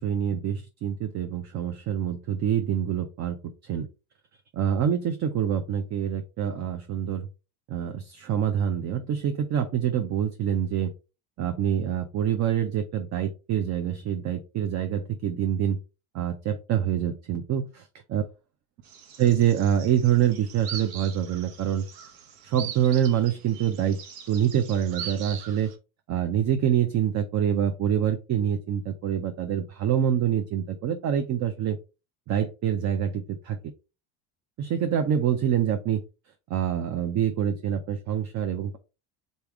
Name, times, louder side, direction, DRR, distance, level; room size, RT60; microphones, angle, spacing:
voice 1, 0.0-3.4 3.6-3.9 4.5-7.3 7.7-10.9 11.4-15.8 16.1-18.2 19.2-21.9 22.4-24.0 24.3-25.7 26.1-31.8 32.3-33.7 34.6-36.0 36.5-38.8, right 9 dB, 35° right, 8 dB, 0.5 m, -26 dB
sound 1, 18.8-25.8, right 8 dB, 70° right, 1.1 m, -41 dB
4.1 x 3.4 x 3.4 m, 0.30 s
supercardioid pair, 95°, 48 cm